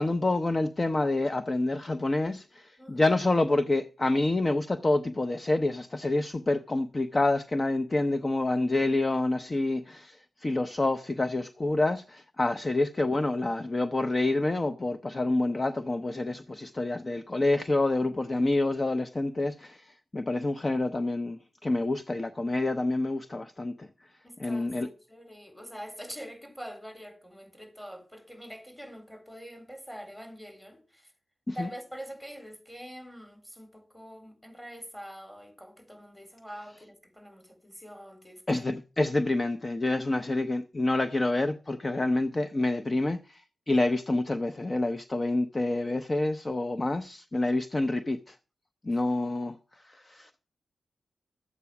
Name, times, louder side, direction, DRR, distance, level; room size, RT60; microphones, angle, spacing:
voice 1, 0.0-23.9 24.4-24.9 31.5-31.7 38.5-43.4 43.7-48.4 48.8-49.5 49.8-50.4, left 2 dB, 30° left, 0.7 m, -28 dB
voice 2, 2.8-3.2 12.4-12.5 24.2-31.1 31.5-38.6 48.9-49.0, equal, 10° left, 3.6 m, -45 dB
12.5 x 8.2 x 5.9 m
cardioid pair, 65°, 0 cm